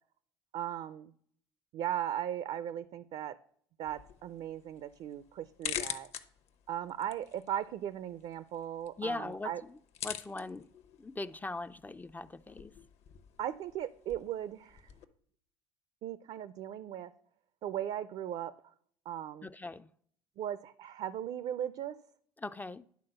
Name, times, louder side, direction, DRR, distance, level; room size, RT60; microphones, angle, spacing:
voice 1, 0.5-1.1 1.7-3.4 3.8-6.1 6.7-9.6 13.4-14.8 16.0-17.1 17.6-18.5 19.1-19.5 20.4-22.0, right 11 dB, 55° right, 0.5 m, -37 dB
sound 1, 3.8-15.0, left 9 dB, 60° left, 0.9 m, -46 dB
voice 2, 9.0-9.8 10.0-10.7 11.0-12.7 19.4-19.9 22.4-22.9, left 2 dB, 15° left, 0.3 m, -40 dB
10.5 x 3.9 x 6.5 m
hypercardioid pair, 75°, 13 cm